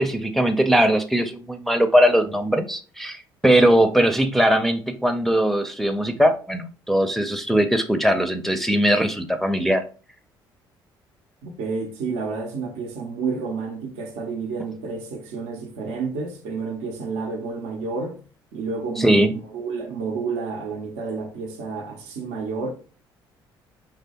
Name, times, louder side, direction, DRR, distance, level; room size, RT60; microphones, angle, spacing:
voice 1, 0.0-9.8 19.0-19.3, right 1 dB, ahead, 0.5 m, -20 dB
voice 2, 11.4-18.2 18.5-22.7, right 4 dB, 70° right, 0.6 m, -30 dB
4.0 x 3.1 x 2.8 m
hypercardioid pair, 50°, 12 cm